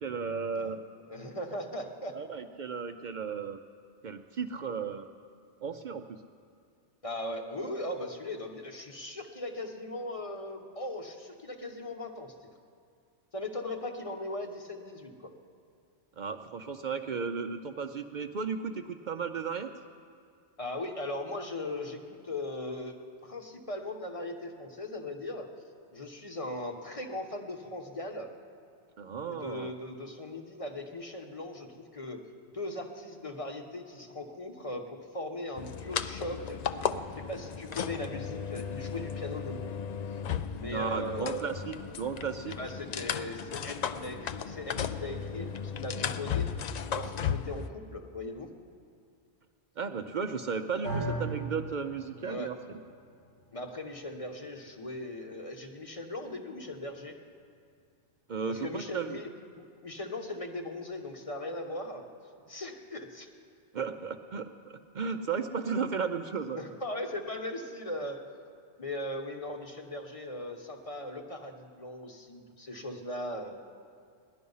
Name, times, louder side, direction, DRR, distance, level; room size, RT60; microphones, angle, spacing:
voice 1, 0.0-0.8 2.1-3.6 4.0-5.1 5.6-6.1 16.2-19.7 29.0-29.7 40.7-42.6 49.8-52.5 58.3-59.2 63.7-66.6, right 5 dB, 55° right, 7 dB, 0.5 m, -34 dB
voice 2, 1.1-2.2 7.0-12.3 13.3-15.3 20.6-23.0 23.2-25.5 25.9-28.3 29.3-32.2 32.5-36.6 37.1-39.7 40.6-41.7 42.6-46.5 46.9-48.5 52.2-52.5 53.5-57.1 58.5-59.3 59.8-62.0 62.5-63.3 66.5-68.2 68.8-73.6, left 1 dB, 30° left, 3 dB, 1.0 m, -39 dB
sound 1, 35.6-47.7, left 7 dB, 60° left, 0.4 m, -35 dB
sound 2, 50.8-59.1, right 2 dB, 85° left, 3.5 m, -42 dB
17.5 x 11.5 x 5.5 m, 2.3 s
omnidirectional pair, 1.2 m